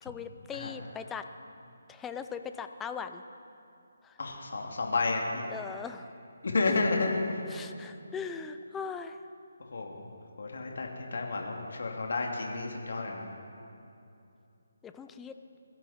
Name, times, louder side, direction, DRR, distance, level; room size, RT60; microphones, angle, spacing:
voice 1, 0.0-1.3 1.9-3.2 4.0-4.2 5.5-6.1 7.5-9.2 14.8-15.3, left 6 dB, 10° left, 8 dB, 0.5 m, -40 dB
voice 2, 4.2-5.5 6.4-7.2 9.7-10.1 10.4-13.3, left 3 dB, 65° left, 0 dB, 2.5 m, -31 dB
22.5 x 15.0 x 4.3 m, 2.7 s
hypercardioid pair, 165°, 0 cm